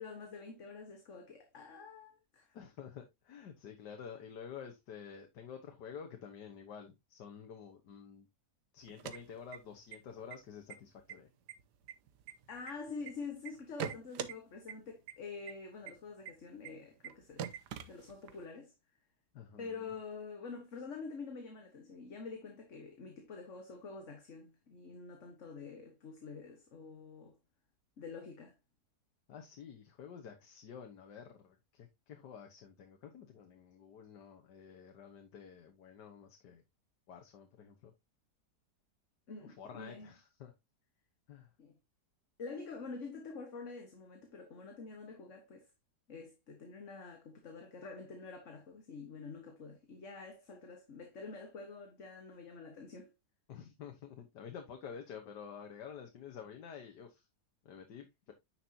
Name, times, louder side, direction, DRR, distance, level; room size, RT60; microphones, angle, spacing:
voice 1, 0.0-2.5 12.5-17.4 17.9-18.7 19.6-27.3 28.0-28.5 39.3-40.1 41.6-41.7 42.4-45.7 46.1-53.1, left 4 dB, 50° left, 1.6 m, -47 dB
voice 2, 2.5-8.3 8.7-11.3 19.3-19.9 29.3-36.6 37.1-37.9 39.4-40.5 41.3-41.5 53.5-57.3 57.7-58.3, left 7 dB, 90° left, 1.8 m, -50 dB
sound 1, 8.8-10.0 10.3-10.4 10.7-11.1 11.5-13.1 13.5-14.3 14.7-14.8 15.1-15.2 15.5-15.6 15.9-16.0 16.3-16.4 16.6-16.7 17.0-17.1 17.4-18.4, right 9 dB, 85° right, 1.4 m, -42 dB
9.9 x 6.0 x 2.8 m
omnidirectional pair, 1.8 m